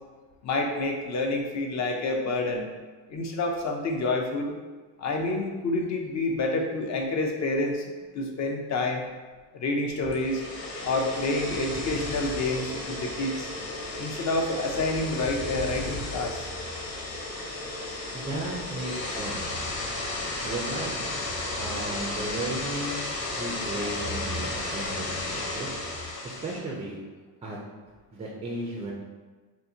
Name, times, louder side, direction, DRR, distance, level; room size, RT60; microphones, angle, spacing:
voice 1, 0.4-2.7 3.1-4.5 5.0-7.8 8.1-9.0 9.5-10.4 10.8-13.5 14.0-16.5, left 2 dB, 40° left, 2 dB, 0.5 m, -28 dB
sound 1, 10.1-26.6, left 2 dB, 55° left, 0.9 m, -33 dB
voice 2, 18.1-19.8 20.4-20.9 21.6-23.0 23.4-25.7 26.2-27.0 27.4-27.6 28.1-28.9, right 1 dB, 15° right, -2 dB, 0.3 m, -35 dB
3.8 x 2.5 x 2.7 m, 1.3 s
cardioid pair, 115°, 45 cm